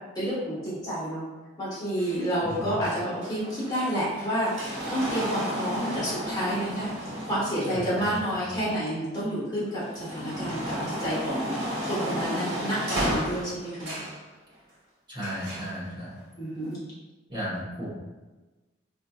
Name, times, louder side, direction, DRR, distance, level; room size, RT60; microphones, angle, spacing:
voice 1, 0.1-1.3 1.6-13.9 16.4-16.8, equal, 20° left, -9 dB, 1.2 m, -30 dB
sound 1, 2.0-9.2 9.6-14.2 15.2-15.7 16.6-16.7, equal, 65° right, 1.2 m, -33 dB
voice 2, 2.4-2.8 7.7-8.6 15.1-16.2 17.3-17.9, equal, 25° right, -7 dB, 1.0 m, -35 dB
4.2 x 2.6 x 2.3 m, 1.2 s
head